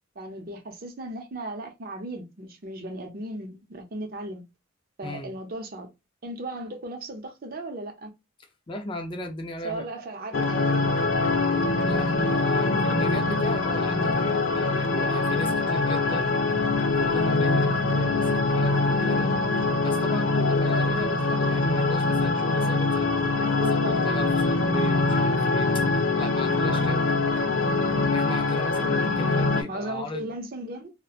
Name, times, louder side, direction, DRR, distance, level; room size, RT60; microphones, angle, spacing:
voice 1, 0.2-4.4 5.0-5.9 6.2-8.1 9.6-10.9 17.9-18.1 23.4-24.1 27.5-27.6 28.8-29.0 29.7-30.9, right 1 dB, 50° right, 0.6 m, -36 dB
voice 2, 8.7-9.9 11.9-16.3 16.8-19.3 19.8-25.8 26.2-27.1 28.1-30.3, left 1 dB, 25° left, 0.4 m, -35 dB
sound 1, 10.3-29.6, left 3 dB, 75° left, 0.5 m, -23 dB
2.7 x 2.1 x 2.4 m
head